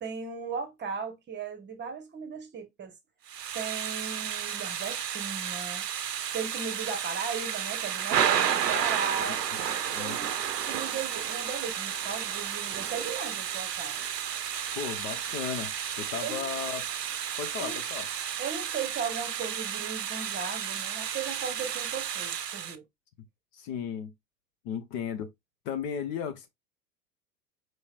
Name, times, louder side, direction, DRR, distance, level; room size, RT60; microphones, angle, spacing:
voice 1, 0.0-2.9 3.5-5.8 6.3-9.4 10.0-10.3 10.6-14.0 16.2-16.5 17.6-17.8 18.4-22.8, right 6 dB, 20° right, 1.0 m, -37 dB
Thunder / Rain, 3.3-22.8, right 9 dB, 80° right, 0.6 m, -32 dB
voice 2, 9.9-10.2 14.7-15.7 16.0-16.9 17.4-18.1 23.5-24.1 24.6-25.3 25.6-26.5, left 7 dB, 45° left, 0.8 m, -35 dB
4.5 x 3.1 x 2.4 m
figure-of-eight pair, 85°, 47 cm